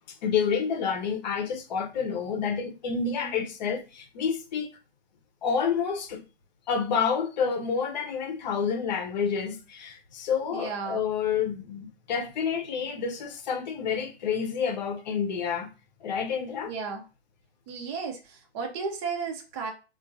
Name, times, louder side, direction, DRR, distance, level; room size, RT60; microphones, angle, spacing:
voice 1, 0.2-4.7 5.4-6.2 6.7-15.7 16.0-16.7, left 6 dB, 45° left, 0.8 m, -29 dB
voice 2, 3.1-3.5 10.5-11.0 16.7-17.0 17.7-19.7, right 5 dB, 25° right, 0.6 m, -34 dB
3.5 x 2.5 x 2.6 m
hypercardioid pair, 130°, 32 cm